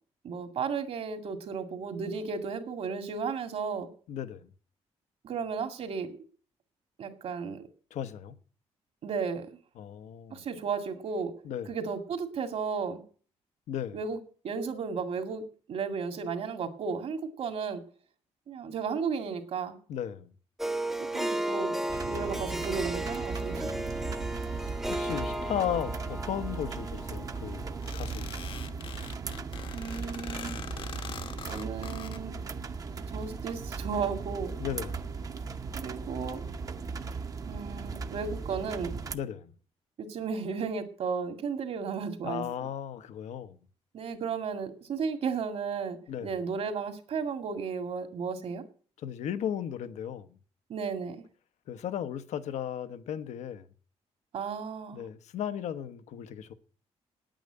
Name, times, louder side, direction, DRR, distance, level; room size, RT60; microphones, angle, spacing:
voice 1, 0.2-3.9 5.2-6.1 7.0-7.7 9.0-9.5 10.3-11.3 11.7-13.0 13.9-14.2 14.4-15.4 15.7-17.8 18.5-19.8 21.1-21.7 22.1-23.7 29.7-30.6 31.5-32.3 33.1-34.5 35.7-36.4 37.5-39.0 40.0-42.4 43.9-48.6 50.7-51.2 54.3-55.0, right 5 dB, 60° right, 2.1 m, -34 dB
voice 2, 4.1-4.5 7.9-8.4 9.8-10.4 11.4-11.7 13.7-14.0 19.9-20.3 23.6-24.3 24.9-28.3 34.6-35.1 39.1-39.5 42.2-43.6 46.1-46.3 49.0-50.4 51.7-53.7 54.9-56.5, left 9 dB, 85° left, 1.1 m, -36 dB
Harp, 20.6-28.1, right 1 dB, 5° right, 0.8 m, -34 dB
sound 1, 21.9-39.2, right 4 dB, 30° right, 0.8 m, -37 dB
sound 2, 27.8-32.2, left 7 dB, 50° left, 1.0 m, -43 dB
9.4 x 9.1 x 9.0 m
cardioid pair, 145°, 12 cm